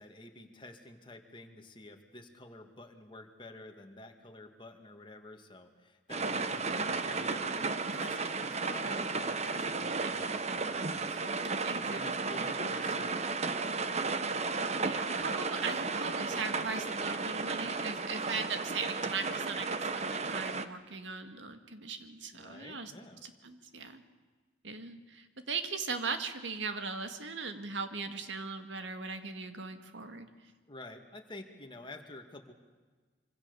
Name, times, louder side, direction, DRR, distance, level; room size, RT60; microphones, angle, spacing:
voice 1, 0.0-7.6 7.9-13.9 22.3-23.2 30.7-32.5, left 2 dB, 25° left, 5 dB, 2.2 m, -49 dB
sound 1, 6.1-20.7, right 4 dB, 35° right, 1.1 m, -34 dB
voice 2, 11.6-12.0 14.8-22.9 23.2-24.0 24.6-30.3, right 4 dB, 80° right, 7 dB, 2.0 m, -39 dB
26.0 x 25.5 x 7.0 m, 1.4 s
head